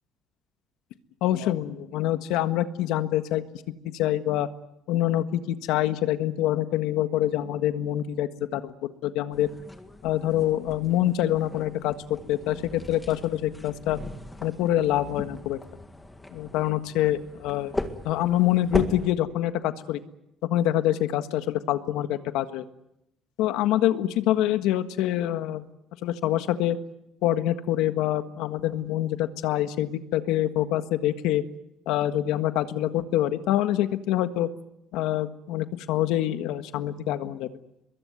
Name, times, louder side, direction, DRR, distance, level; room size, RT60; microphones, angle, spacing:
voice 1, 1.2-3.4 3.8-4.5 4.9-9.5 10.0-14.0 14.4-15.6 16.3-17.7 18.0-20.0 20.4-22.6 23.4-25.6 26.0-26.8 27.2-31.4 31.9-34.5 34.9-37.5, left 13 dB, 80° left, 10 dB, 1.5 m, -25 dB
sound 1, 9.3-19.1, left 2 dB, 10° left, 1.9 m, -38 dB
24.0 x 22.0 x 9.6 m, 0.85 s
cardioid pair, 175°, 0 cm